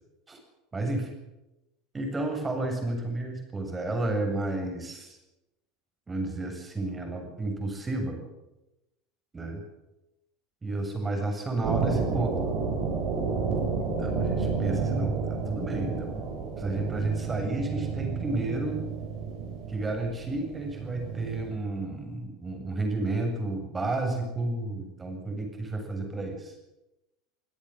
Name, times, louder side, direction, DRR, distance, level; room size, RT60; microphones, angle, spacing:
voice 1, 0.7-1.1 1.9-5.2 6.1-8.2 9.3-9.6 10.6-12.4 13.8-16.2 16.6-18.8 19.7-26.5, right 2 dB, 20° right, 4 dB, 7.6 m, -31 dB
sound 1, 11.6-21.5, right 5 dB, 55° right, 7.8 m, -31 dB
24.5 x 17.0 x 8.0 m, 0.95 s
figure-of-eight pair, 75°, 0 cm